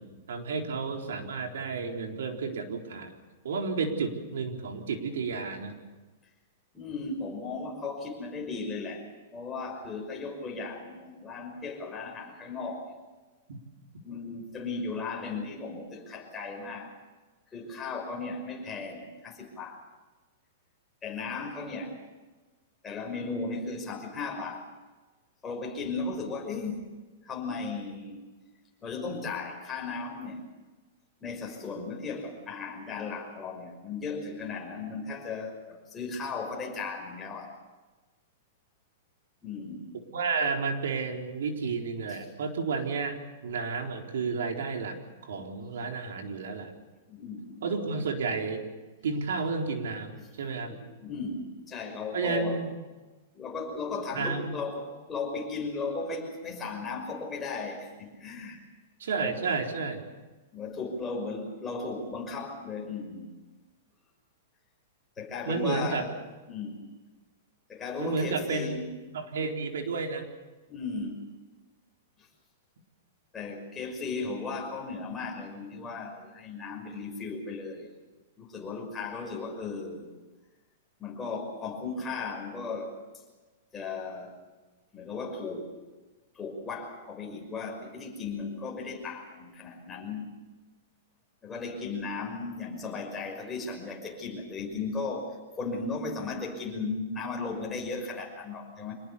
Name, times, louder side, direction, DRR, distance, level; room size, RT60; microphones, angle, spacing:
voice 1, 0.0-3.1 3.4-5.8 13.5-13.6 39.9-43.2 43.4-45.0 45.2-46.7 47.6-48.6 49.0-50.7 52.1-52.7 54.1-54.6 59.0-60.0 65.5-66.0 68.0-68.8 69.1-70.3, right 4 dB, 85° right, 3 dB, 4.1 m, -31 dB
voice 2, 6.7-13.0 14.0-17.0 17.5-19.8 21.0-22.0 22.8-24.7 25.4-26.9 27.2-28.2 28.8-30.4 31.2-37.5 39.4-39.9 42.1-42.2 46.3-46.4 47.1-47.7 50.2-50.3 50.7-52.6 53.3-58.6 59.2-59.4 60.5-63.3 65.2-66.2 66.5-66.9 67.7-68.9 70.7-71.1 72.2-72.3 73.3-77.9 78.4-80.1 81.0-83.0 83.7-84.4 84.9-85.7 86.3-90.3 91.4-98.9, left 4 dB, 15° left, 1 dB, 5.7 m, -36 dB
26.0 x 20.0 x 7.1 m, 1.2 s
supercardioid pair, 160°, 0 cm